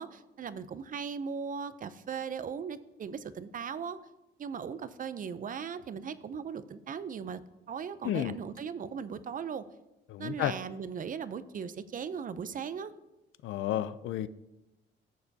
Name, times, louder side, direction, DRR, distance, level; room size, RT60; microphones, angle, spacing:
voice 1, 0.0-4.0 4.4-7.4 7.7-9.6 10.2-12.9, right 6 dB, 45° right, 14 dB, 0.5 m, -38 dB
voice 2, 8.0-8.3 10.1-10.5 13.4-14.3, left 12 dB, 75° left, 15 dB, 0.4 m, -31 dB
14.0 x 6.7 x 2.7 m, 0.98 s
cardioid pair, 90°, 20 cm